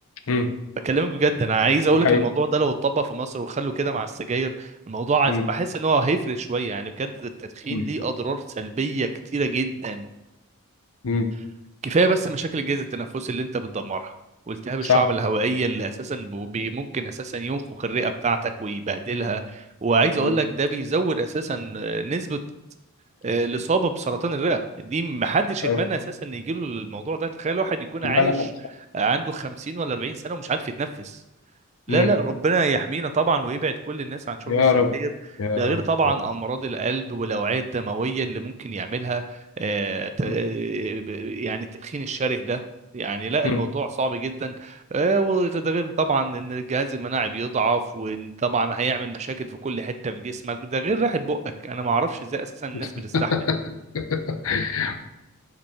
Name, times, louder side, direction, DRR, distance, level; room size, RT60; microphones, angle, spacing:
voice 1, 0.8-10.1 11.8-14.1 14.5-22.4 23.2-28.3 28.9-31.2 31.9-34.6 34.9-35.1 35.6-39.2 39.6-42.6 42.9-53.3, right 3 dB, 30° right, 9 dB, 0.4 m, -25 dB
voice 2, 28.0-28.5 31.9-32.1 34.5-34.9 35.4-36.2 40.2-40.4 43.4-43.6 52.7-53.6 53.9-55.0, left 4 dB, 65° left, 8 dB, 0.6 m, -23 dB
5.3 x 5.3 x 4.2 m, 0.92 s
head